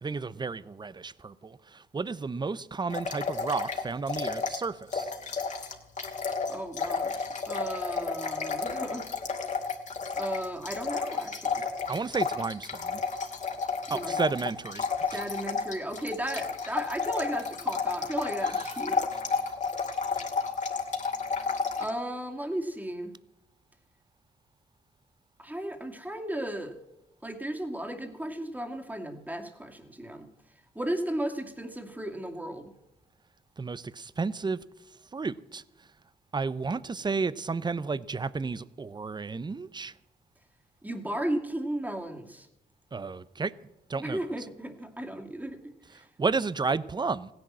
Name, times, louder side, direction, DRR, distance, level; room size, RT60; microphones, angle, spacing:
voice 1, 0.0-5.1 11.9-13.0 13.9-15.2 18.4-18.8 19.1-19.2 20.1-20.2 33.6-34.6 35.1-35.6 36.3-39.9 42.9-43.5 43.9-44.5 45.9-47.3, right 4 dB, 25° right, 0.7 m, -32 dB
sound 1, 2.9-4.6 4.9-21.9, left 5 dB, 45° left, 2.4 m, -32 dB
voice 2, 6.5-9.1 10.2-11.6 13.9-14.2 15.0-19.0 21.8-23.1 25.4-26.8 27.2-30.3 30.7-32.7 40.8-42.5 44.0-46.1, right 1 dB, 10° right, 2.4 m, -35 dB
16.5 x 10.5 x 7.5 m
cardioid pair, 80°, 17 cm